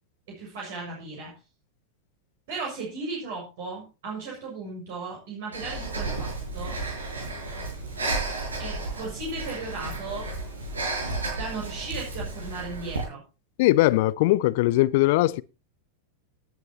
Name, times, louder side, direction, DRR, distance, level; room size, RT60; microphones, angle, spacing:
voice 1, 0.3-1.3 2.5-6.8 8.6-10.3 11.4-13.2, right 3 dB, 50° right, 6.5 m, -36 dB
Breathing, 5.5-13.0, right 2 dB, 75° right, 6.3 m, -32 dB
voice 2, 13.6-15.4, left 18 dB, 50° left, 0.7 m, -20 dB
19.0 x 10.5 x 3.0 m
figure-of-eight pair, 90°, 0 cm